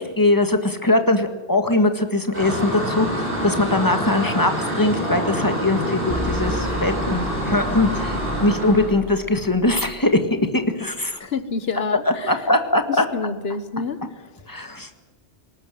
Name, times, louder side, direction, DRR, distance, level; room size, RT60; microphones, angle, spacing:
voice 1, 0.0-10.2 10.5-11.2 12.2-13.1 14.5-14.9, left 2 dB, 20° left, 7 dB, 1.8 m, -21 dB
sound 1, 2.3-8.9, equal, 55° right, 7.6 m, -26 dB
sound 2, 6.1-10.6, equal, ahead, 1.5 m, -33 dB
voice 2, 11.2-12.4 12.9-14.2, left 4 dB, 65° left, 13 dB, 1.5 m, -28 dB
20.0 x 18.5 x 9.2 m, 1.2 s
omnidirectional pair, 1.1 m